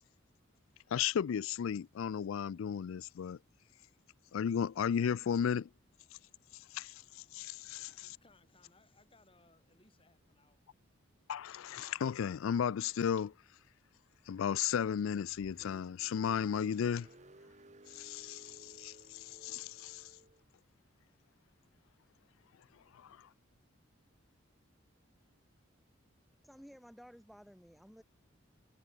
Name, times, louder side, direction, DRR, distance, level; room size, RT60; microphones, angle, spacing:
voice 1, 0.9-3.4 4.3-5.7 6.7-6.9 7.3-7.9 11.3-13.3 14.3-17.1 17.9-20.1 22.9-23.1, left 8 dB, 75° left, 0.3 m, -34 dB
voice 2, 7.8-10.7, left 3 dB, 25° left, 3.1 m, -67 dB
Car, 15.0-20.4, right 1 dB, 35° right, 1.3 m, -59 dB
voice 3, 26.4-28.0, equal, ahead, 2.6 m, -55 dB
head